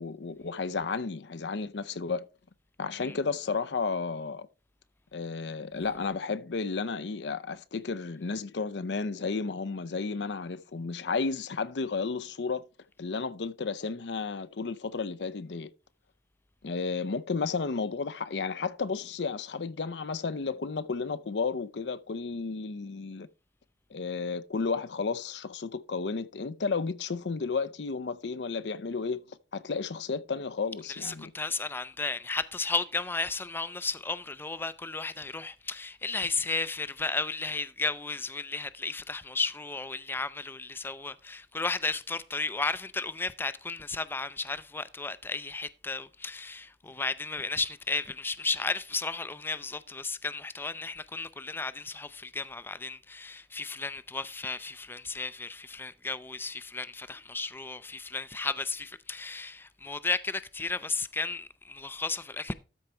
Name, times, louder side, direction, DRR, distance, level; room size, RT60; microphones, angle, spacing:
voice 1, 0.0-2.2 2.8-4.5 5.1-12.6 13.0-15.7 16.6-23.3 23.9-31.3, left 4 dB, 80° left, 0.6 m, -32 dB
voice 2, 30.8-62.5, left 3 dB, 15° left, 0.4 m, -34 dB
13.0 x 4.7 x 4.3 m
head